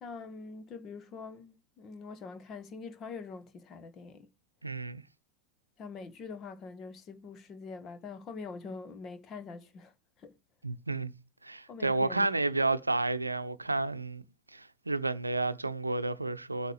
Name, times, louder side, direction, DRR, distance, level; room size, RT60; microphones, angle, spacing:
voice 1, 0.0-4.3 5.8-9.9 10.2-10.3 11.7-12.3, left 4 dB, 30° left, 1.5 m, -44 dB
voice 2, 4.6-5.0 10.6-11.1 11.4-14.2 14.5-16.7, right 2 dB, 80° right, 0.7 m, -31 dB
20.5 x 8.2 x 3.2 m
figure-of-eight pair, 90°, 0 cm